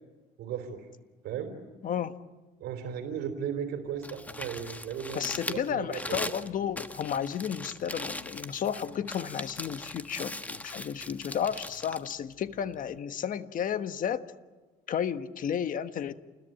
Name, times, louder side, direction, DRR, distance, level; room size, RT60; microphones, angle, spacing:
voice 1, 0.4-0.9 1.2-1.6 2.6-6.3, right 8 dB, 75° right, 6 dB, 3.5 m, -36 dB
voice 2, 1.8-2.1 5.1-14.2 14.9-16.1, left 8 dB, 55° left, 11 dB, 1.4 m, -32 dB
Crumpling crinkling, 3.9-13.0, left 1 dB, 10° left, 1.4 m, -40 dB
29.0 x 21.5 x 9.1 m, 1.3 s
cardioid pair, 110°, 17 cm